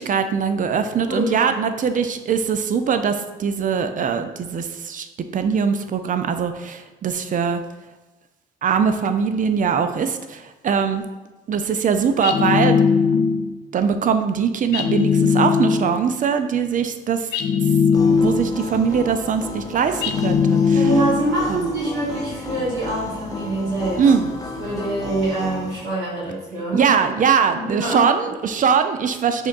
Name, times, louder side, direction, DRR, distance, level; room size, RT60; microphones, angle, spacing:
voice 1, 0.0-7.6 8.6-11.0 11.5-12.8 13.7-17.3 18.1-20.8 21.5-21.7 24.0-24.3 26.7-29.5, right 6 dB, 40° right, 8 dB, 0.4 m, -21 dB
voice 2, 1.0-1.5 20.7-24.0 24.6-26.9 27.5-28.1, right 2 dB, 80° right, -7 dB, 1.3 m, -25 dB
sound 1, 12.2-13.6 14.7-16.1 17.3-18.7 20.0-21.4, left 6 dB, 55° left, 0.5 m, -19 dB
sound 2, 17.9-25.8, left 2 dB, 20° left, 0.8 m, -33 dB
6.2 x 2.3 x 2.5 m, 1.1 s
supercardioid pair, 55°, 21 cm